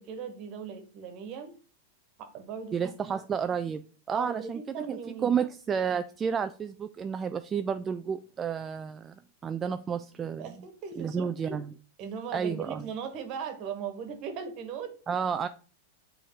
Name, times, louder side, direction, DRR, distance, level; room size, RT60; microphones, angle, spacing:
voice 1, 0.0-1.6 2.2-3.2 4.1-5.4 10.4-11.6 12.0-15.0, right 6 dB, 45° right, 1.3 m, -38 dB
voice 2, 2.7-3.8 4.1-9.1 9.4-10.5 11.0-11.7 12.3-12.8 15.1-15.5, right 7 dB, 20° right, 0.3 m, -31 dB
8.5 x 3.4 x 3.7 m
hypercardioid pair, 130°, 0 cm